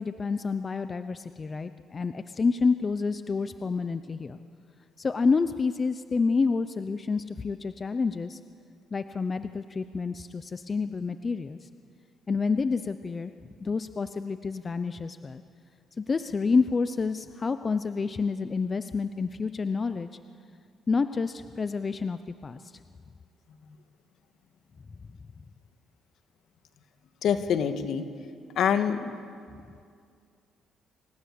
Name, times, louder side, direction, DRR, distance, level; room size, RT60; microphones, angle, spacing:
voice 1, 0.0-4.4 5.0-8.4 8.9-11.6 12.3-13.3 13.6-15.4 16.0-20.1 20.9-22.6, left 4 dB, 30° left, 11 dB, 0.7 m, -28 dB
voice 2, 27.2-28.0 28.6-29.1, left 8 dB, 70° left, 8 dB, 1.7 m, -25 dB
26.5 x 18.0 x 8.5 m, 2.3 s
cardioid pair, 105°, 0 cm